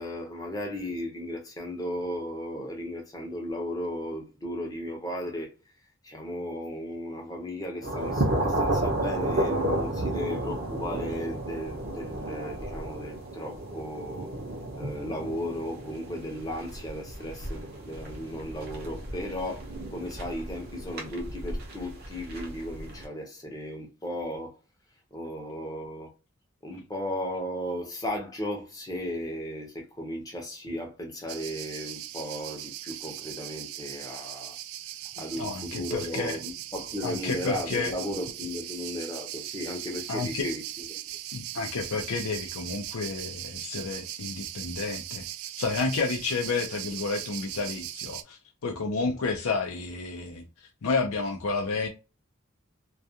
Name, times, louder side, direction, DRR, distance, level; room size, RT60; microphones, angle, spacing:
voice 1, 0.0-5.5 6.0-14.3 14.8-19.6 19.9-24.6 25.1-26.1 26.6-34.6 35.2-40.8, left 1 dB, 15° left, 0.6 m, -35 dB
sound 1, 7.8-23.0, right 1 dB, 45° right, 0.7 m, -32 dB
sound 2, 31.3-48.2, right 13 dB, 90° right, 0.3 m, -39 dB
voice 2, 35.3-36.4 37.0-37.9 40.1-40.5 41.3-45.3 45.6-51.9, left 4 dB, 90° left, 0.5 m, -31 dB
2.3 x 2.3 x 2.7 m
head